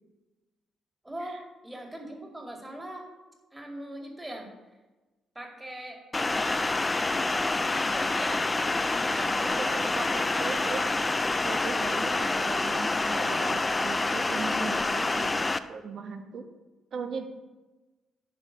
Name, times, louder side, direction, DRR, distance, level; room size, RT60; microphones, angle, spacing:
voice 1, 1.0-3.1 3.5-4.5 5.3-6.8 7.3-9.8, right 1 dB, 10° right, 1 dB, 2.3 m, -41 dB
sound 1, 6.1-15.6, left 2 dB, 20° left, 0.5 m, -27 dB
voice 2, 9.1-10.9 11.3-15.4 15.7-16.4 16.9-17.2, right 5 dB, 60° right, 5 dB, 1.4 m, -38 dB
9.9 x 6.0 x 5.2 m, 1.2 s
cardioid pair, 90°, 0 cm